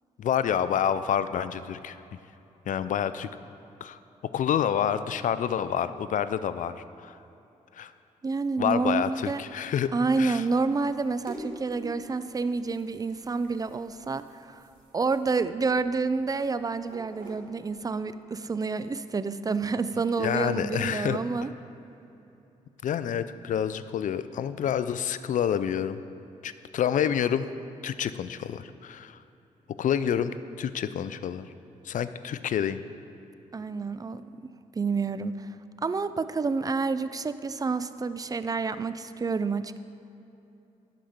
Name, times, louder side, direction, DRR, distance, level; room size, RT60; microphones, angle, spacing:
voice 1, 0.2-2.0 2.7-3.3 3.8-4.0 4.3-7.2 7.7-7.9 8.6-9.9 10.2-10.4 20.2-21.5 22.8-26.0 26.4-27.5 27.8-29.2 29.8-30.3 30.6-31.5 31.8-32.8, left 9 dB, 65° left, 13 dB, 0.4 m, -28 dB
voice 2, 8.2-9.4 9.9-14.6 14.9-21.5 33.5-34.2 34.7-35.5 35.8-39.8, right 4 dB, 25° right, 13 dB, 0.5 m, -29 dB
sound 1, 8.4-18.0, right 1 dB, 70° right, 2.0 m, -48 dB
11.5 x 5.1 x 5.9 m, 2.9 s
supercardioid pair, 55°, 15 cm